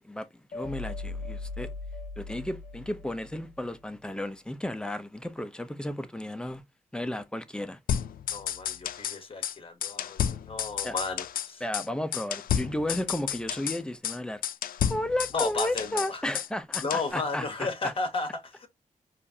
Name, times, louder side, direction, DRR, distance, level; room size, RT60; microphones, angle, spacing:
voice 1, 0.0-1.7 2.2-6.6 6.9-7.8 10.8-11.0 11.6-14.4 14.9-17.9, left 1 dB, 5° left, 0.5 m, -33 dB
sound 1, 0.5-3.7, left 3 dB, 60° left, 0.7 m, -39 dB
sound 2, 7.9-9.2 9.4-9.5 9.8-11.5 11.7-11.9 12.1-13.8 14.0-14.2 14.4-16.5 16.7-17.1, left 9 dB, 90° left, 0.4 m, -31 dB
voice 2, 8.3-11.6 15.3-16.2 16.8-18.7, left 3 dB, 40° left, 1.1 m, -33 dB
4.9 x 2.5 x 2.7 m
wide cardioid pair, 110°, 14 cm